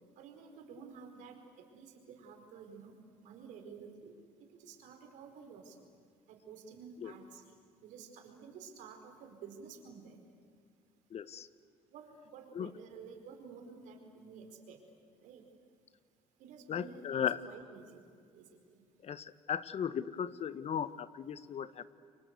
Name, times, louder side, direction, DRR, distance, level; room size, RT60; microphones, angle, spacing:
voice 1, 0.2-4.2 4.6-5.8 6.3-7.6 7.8-10.2 11.9-14.8 15.2-15.5 16.4-18.8, right 5 dB, 80° right, 5 dB, 4.6 m, -52 dB
voice 2, 11.1-11.5 12.5-12.7 16.7-17.4 19.0-21.8, left 8 dB, 55° left, 15 dB, 1.2 m, -36 dB
29.0 x 24.5 x 8.2 m, 2.2 s
supercardioid pair, 65°, 13 cm